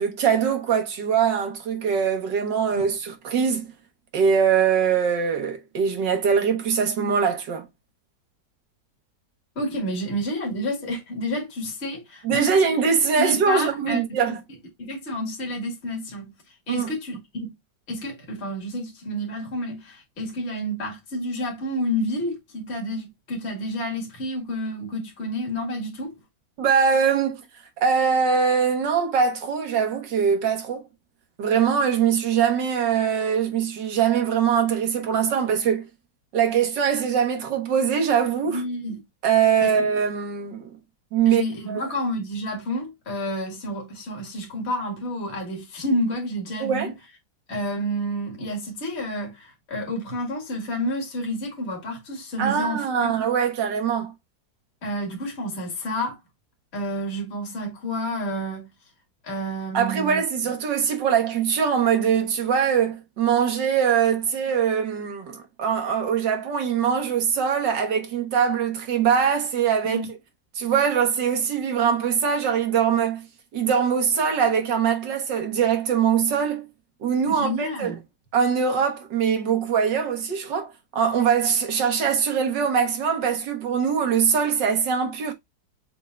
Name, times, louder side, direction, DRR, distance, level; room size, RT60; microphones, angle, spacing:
voice 1, 0.0-3.7 4.1-7.7 12.2-14.4 16.7-16.9 26.6-27.4 27.8-30.9 31.4-35.9 36.3-38.6 39.2-40.7 41.1-41.4 41.7-41.9 46.6-46.9 52.4-54.1 59.7-70.1 70.6-73.3 73.5-76.7 77.0-77.9 78.3-85.3, right 7 dB, 70° right, 1.9 m, -22 dB
voice 2, 9.6-12.7 13.2-14.4 14.8-16.3 16.7-17.5 17.9-26.1 38.5-39.0 39.6-39.7 41.3-46.9 47.5-53.1 54.8-56.2 56.7-58.7 59.2-60.2 69.8-70.1 77.2-78.0, equal, 35° left, 2.2 m, -30 dB
6.6 x 3.6 x 2.2 m
omnidirectional pair, 2.0 m